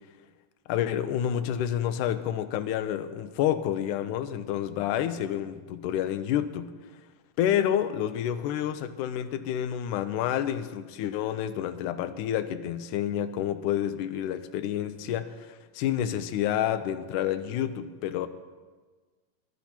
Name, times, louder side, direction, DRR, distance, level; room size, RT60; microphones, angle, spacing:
voice 1, 0.7-6.7 7.4-15.5 15.8-18.3, left 10 dB, 80° left, 9 dB, 1.9 m, -29 dB
21.5 x 11.5 x 4.4 m, 1.4 s
omnidirectional pair, 4.3 m